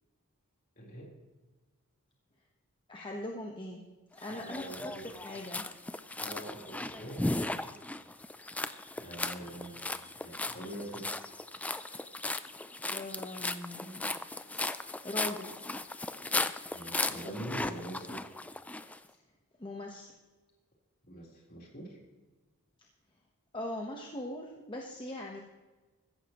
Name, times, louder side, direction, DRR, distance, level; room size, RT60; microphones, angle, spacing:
voice 1, 0.8-1.1 4.3-5.1 6.2-7.8 8.5-9.8 10.2-11.1 16.7-18.2 21.0-22.0, right 1 dB, 45° left, -2 dB, 3.8 m, -44 dB
voice 2, 2.9-3.8 4.2-5.6 12.9-14.1 15.0-15.6 19.6-20.1 23.5-25.4, left 1 dB, 20° left, 0 dB, 1.1 m, -40 dB
sound 1, 4.2-19.0, left 2 dB, 5° left, 0.3 m, -37 dB
16.0 x 14.5 x 3.0 m, 1.2 s
head